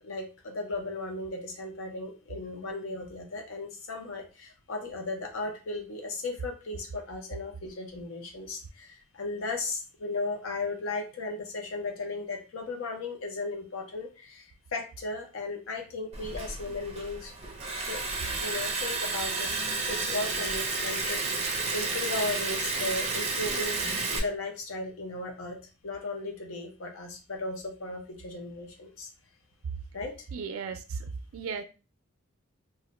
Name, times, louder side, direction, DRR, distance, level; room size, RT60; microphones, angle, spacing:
voice 1, 0.0-18.0 18.4-19.5 19.8-23.9 24.1-25.6 25.8-29.1 29.9-30.3, left 2 dB, 70° left, 3 dB, 0.6 m, -36 dB
Liquid, 16.1-24.2, right 3 dB, 30° right, 0.5 m, -31 dB
voice 2, 30.3-31.0 31.3-31.6, right 5 dB, 80° right, 8 dB, 0.4 m, -35 dB
2.5 x 2.1 x 3.8 m, 0.32 s
head